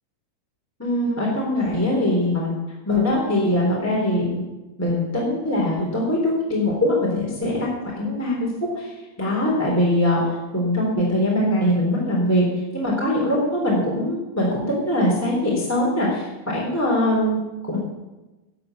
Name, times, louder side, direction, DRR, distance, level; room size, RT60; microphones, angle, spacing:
voice 1, 0.8-2.5 2.8-4.4 4.8-8.5 8.8-10.2 10.5-12.4 12.7-17.8, left 1 dB, 5° left, -4 dB, 2.4 m, -22 dB
16.0 x 7.9 x 9.4 m, 1.1 s
omnidirectional pair, 5.9 m